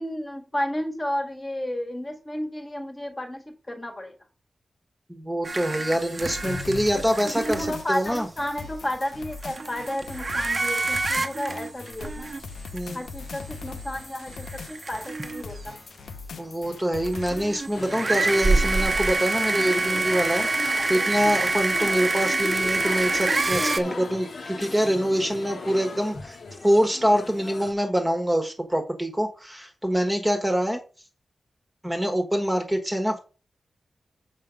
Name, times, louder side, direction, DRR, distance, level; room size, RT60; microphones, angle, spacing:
voice 1, 0.0-4.1 6.9-12.3 12.9-15.8 21.8-22.0, left 1 dB, 20° left, 4 dB, 1.5 m, -32 dB
voice 2, 5.1-8.3 12.7-13.0 16.4-26.4 26.6-30.8 31.8-33.2, equal, 5° right, 4 dB, 1.3 m, -25 dB
sound 1, 5.4-8.1 8.9-9.0 9.3-12.8 13.2-13.3 14.0-15.6 17.0-23.8, right 3 dB, 35° right, 0.8 m, -27 dB
sound 2, 6.2-17.5, left 4 dB, 75° left, 0.9 m, -40 dB
sound 3, 17.7-27.7, left 3 dB, 60° left, 1.3 m, -36 dB
7.5 x 5.3 x 5.2 m, 0.34 s
wide cardioid pair, 160°, 0 cm